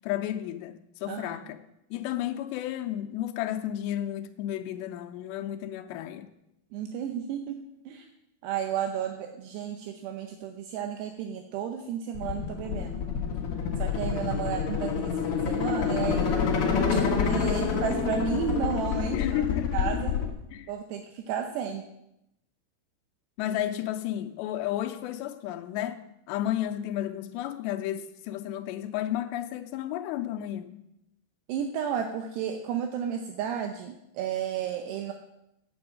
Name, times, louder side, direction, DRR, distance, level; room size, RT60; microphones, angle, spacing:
voice 1, 0.0-1.6 1.9-6.3 19.1-19.7 20.5-20.7 23.4-26.0 26.3-30.7, left 12 dB, 90° left, 2.8 m, -32 dB
voice 2, 1.1-1.4 6.7-7.6 7.9-8.1 8.4-12.9 13.8-16.5 16.9-19.4 19.7-20.1 20.7-21.8 31.5-35.1, right 8 dB, 80° right, 2.8 m, -33 dB
sound 1, 12.1-20.3, left 6 dB, 60° left, 1.5 m, -27 dB
8.8 x 8.7 x 7.5 m
omnidirectional pair, 5.0 m